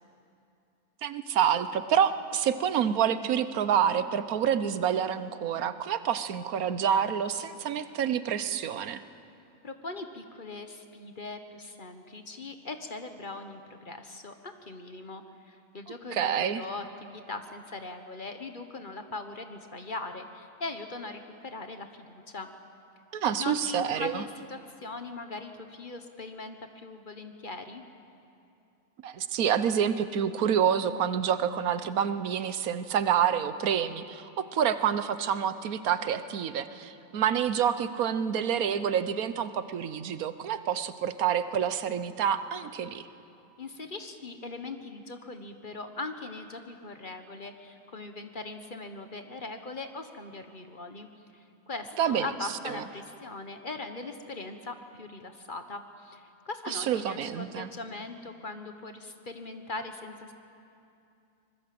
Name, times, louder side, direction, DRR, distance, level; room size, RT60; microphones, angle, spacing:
voice 1, 1.0-9.0 16.1-16.6 23.1-24.2 29.0-43.1 52.0-52.3 52.7-52.8 56.7-57.7, right 8 dB, 85° right, 12 dB, 1.3 m, -28 dB
voice 2, 9.6-22.5 23.4-27.8 43.6-51.1 51.3-60.3, left 3 dB, 35° left, 7 dB, 1.3 m, -40 dB
25.0 x 20.5 x 7.7 m, 2.6 s
omnidirectional pair, 1.5 m